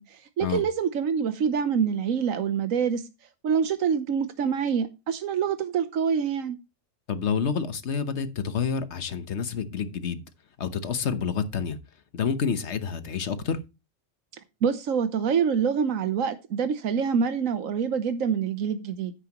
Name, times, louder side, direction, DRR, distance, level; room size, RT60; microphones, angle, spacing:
voice 1, 0.0-3.0 3.4-6.6 14.6-19.1, right 7 dB, 85° right, 1.3 m, -26 dB
voice 2, 7.1-10.2 10.6-11.8 12.1-13.6, left 6 dB, 60° left, 1.3 m, -28 dB
9.8 x 9.6 x 3.0 m
omnidirectional pair, 1.3 m